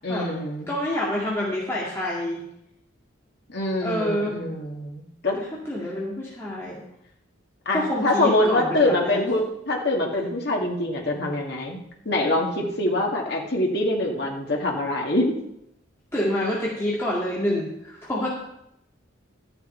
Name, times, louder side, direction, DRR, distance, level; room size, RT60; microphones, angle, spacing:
voice 1, 0.0-0.7 3.5-5.4 7.7-15.3, left 1 dB, 55° left, -1 dB, 2.0 m, -24 dB
voice 2, 0.7-2.4 3.8-4.5 5.3-6.8 7.7-9.2 16.1-18.3, left 1 dB, 15° left, -6 dB, 2.1 m, -27 dB
12.5 x 9.9 x 4.4 m, 0.80 s
head